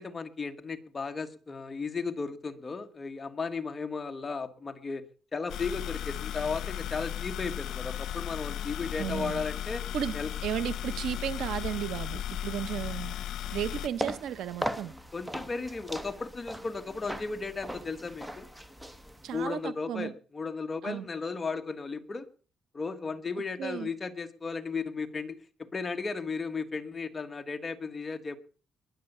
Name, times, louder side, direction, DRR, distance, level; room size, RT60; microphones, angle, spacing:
voice 1, 0.0-5.0 5.3-9.8 10.1-10.3 15.1-18.5 19.3-22.3 22.7-25.4 25.7-28.4, left 4 dB, 20° left, 1.4 m, -35 dB
sound 1, 5.5-13.9, left 11 dB, 75° left, 0.9 m, -36 dB
voice 2, 9.0-9.4 9.9-13.2 13.5-14.9 19.2-20.1 20.8-21.1 23.6-23.9, right 10 dB, 85° right, 0.9 m, -34 dB
sound 2, 13.8-19.5, equal, 5° right, 1.0 m, -39 dB
21.0 x 8.4 x 6.8 m
cardioid pair, 175°, 0 cm